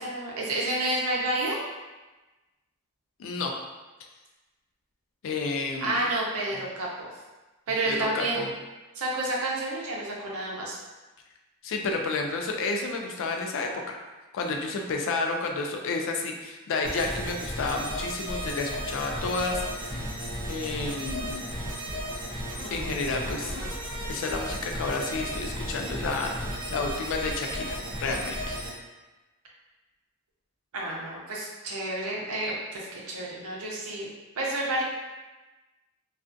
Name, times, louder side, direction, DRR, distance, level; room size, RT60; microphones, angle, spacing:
voice 1, 0.0-1.6 5.8-6.9 7.7-8.5 8.9-10.8 30.7-34.1 34.4-34.8, right 2 dB, 70° right, -3 dB, 0.6 m, -30 dB
voice 2, 3.2-3.5 5.2-6.0 7.9-8.5 11.6-14.0 14.3-19.6 20.5-21.5 22.7-23.6 24.1-26.3 26.7-28.6, left 3 dB, 60° left, 2 dB, 0.3 m, -30 dB
sound 1, 16.8-28.7, equal, 20° right, 0.6 m, -34 dB
2.4 x 2.3 x 2.5 m, 1.2 s
head